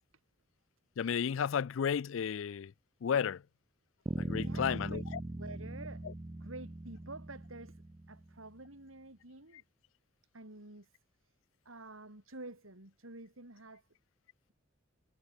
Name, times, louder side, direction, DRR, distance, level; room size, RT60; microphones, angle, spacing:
voice 1, 1.0-2.7 3.0-3.4 4.2-5.2, left 7 dB, 70° left, 0.4 m, -33 dB
sound 1, 4.1-8.4, right 1 dB, 20° right, 0.5 m, -40 dB
voice 2, 4.1-5.0 5.3-6.1 6.4-9.6 10.3-10.9 11.6-13.8, right 2 dB, 90° right, 4.8 m, -49 dB
head